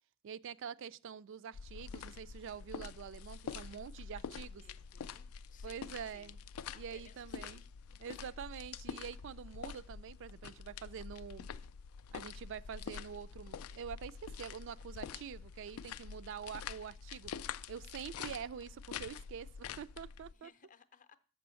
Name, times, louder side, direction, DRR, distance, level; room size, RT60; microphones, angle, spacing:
voice 1, 0.2-4.6 5.6-6.4 6.7-7.6 8.0-11.5 12.1-17.3 17.7-20.5, right 7 dB, 60° right, 0.3 m, -46 dB
sound 1, 1.5-20.3, left 7 dB, 80° left, 0.3 m, -46 dB
voice 2, 4.6-6.3 6.7-7.7 8.0-8.2 20.3-21.2, left 6 dB, 35° left, 0.6 m, -62 dB
6.8 x 5.2 x 6.8 m
head